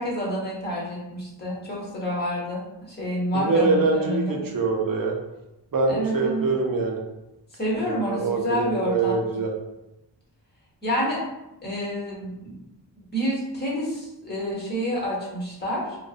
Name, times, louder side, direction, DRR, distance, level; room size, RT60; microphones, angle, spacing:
voice 1, 0.0-2.6 2.9-4.3 5.9-6.4 7.5-9.2 10.8-11.2 11.6-12.6 13.0-16.0, equal, 20° left, -5 dB, 0.9 m, -28 dB
voice 2, 3.3-5.2 5.7-7.0 7.8-9.5, right 3 dB, 50° right, 1 dB, 0.5 m, -24 dB
2.5 x 2.1 x 2.4 m, 0.94 s
wide cardioid pair, 80°, 45 cm